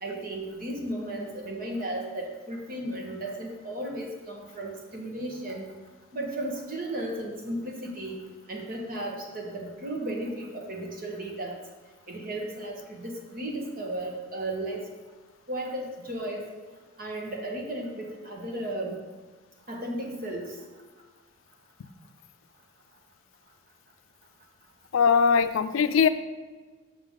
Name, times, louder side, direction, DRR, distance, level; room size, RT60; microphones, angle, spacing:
voice 1, 0.0-5.6 6.1-11.6 12.1-14.8 15.5-16.4 17.0-19.0 19.7-20.5, right 1 dB, 45° right, 0 dB, 1.3 m, -34 dB
voice 2, 24.9-26.1, left 6 dB, 90° left, 11 dB, 0.4 m, -21 dB
7.0 x 5.8 x 3.7 m, 1.4 s
head